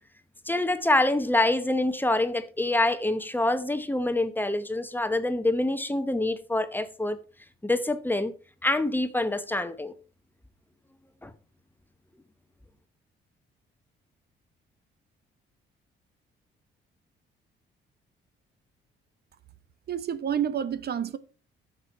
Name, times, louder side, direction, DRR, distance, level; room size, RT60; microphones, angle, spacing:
voice 1, 0.5-7.2 7.6-8.3 8.6-9.9 11.2-11.3, left 2 dB, 10° left, 1.0 m, -26 dB
voice 2, 19.9-21.2, right 9 dB, 55° right, 0.9 m, -29 dB
10.5 x 6.9 x 4.6 m
cardioid pair, 90°, 20 cm